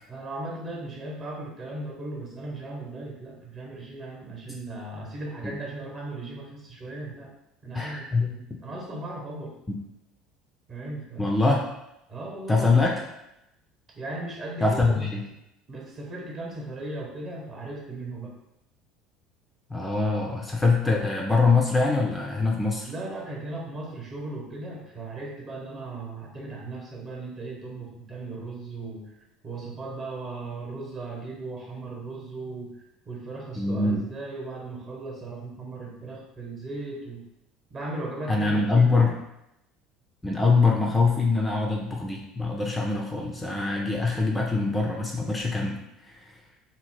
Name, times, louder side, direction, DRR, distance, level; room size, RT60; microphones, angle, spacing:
voice 1, 0.1-7.3 7.6-9.6 10.7-11.4 12.1-12.7 13.0-13.1 13.9-15.0 15.7-18.3 22.8-29.2 29.4-37.2 37.7-39.1, right 2 dB, 35° right, -1 dB, 0.9 m, -37 dB
voice 2, 7.7-8.3 9.7-9.8 11.2-11.6 12.5-13.0 14.6-15.2 19.7-22.9 33.6-34.1 38.3-39.1 40.2-45.8 46.0-46.2, left 3 dB, 15° left, -1 dB, 0.4 m, -23 dB
2.7 x 2.0 x 3.1 m, 0.86 s
figure-of-eight pair, 65°, 0 cm